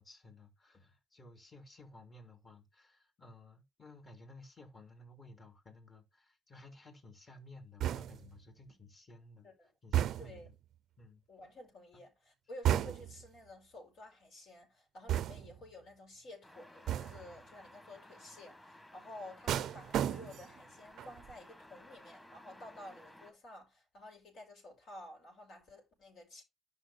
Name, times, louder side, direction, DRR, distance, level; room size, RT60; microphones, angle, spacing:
voice 1, 0.0-9.5 9.8-10.5 11.0-11.2 11.9-12.0, left 2 dB, 35° left, 2.9 m, -56 dB
sound 1, 7.8-8.4 9.9-10.5 12.6-13.3 15.1-15.6 16.9-17.3 19.5-20.6 21.0-21.3, right 11 dB, 75° right, 0.4 m, -33 dB
voice 2, 11.3-26.4, left 1 dB, 75° left, 5.4 m, -52 dB
sound 2, 16.4-23.3, left 1 dB, 15° left, 2.3 m, -57 dB
11.5 x 5.7 x 2.8 m
cardioid pair, 90°, 0 cm